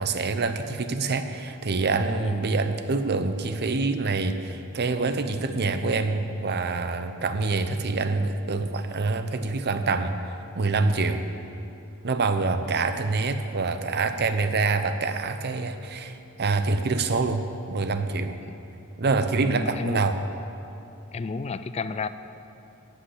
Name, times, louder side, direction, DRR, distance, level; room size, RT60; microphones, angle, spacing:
voice 1, 0.0-10.2 10.6-11.2 12.0-18.4 19.0-20.2, right 3 dB, 50° right, 9 dB, 0.7 m, -26 dB
voice 2, 19.4-20.0 21.1-22.1, left 4 dB, 30° left, 12 dB, 0.4 m, -32 dB
13.5 x 5.6 x 8.3 m, 2.7 s
head